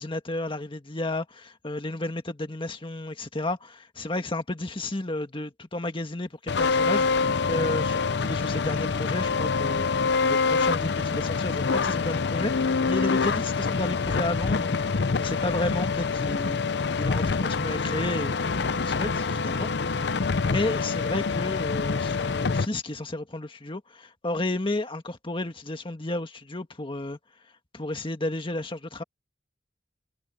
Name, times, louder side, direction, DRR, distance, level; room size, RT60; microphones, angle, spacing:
voice 1, 0.0-19.7 20.0-27.2 27.7-29.0, left 2 dB, 30° left, 1.7 m, -32 dB
sound 1, 6.5-22.7, left 4 dB, 70° left, 0.7 m, -26 dB
head